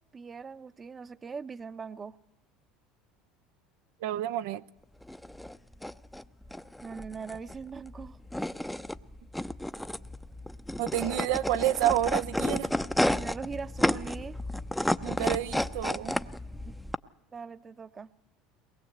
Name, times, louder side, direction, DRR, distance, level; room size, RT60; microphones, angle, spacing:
voice 1, 0.1-2.2 6.8-8.2 13.1-14.4 17.3-18.1, right 5 dB, 25° right, 14 dB, 0.9 m, -41 dB
voice 2, 4.0-4.6 10.8-12.7 15.0-16.2, right 13 dB, 75° right, 11 dB, 0.7 m, -29 dB
sound 1, 5.0-17.0, left 1 dB, 5° left, 0.8 m, -32 dB
22.5 x 20.0 x 8.1 m, 0.86 s
hypercardioid pair, 85°, 0 cm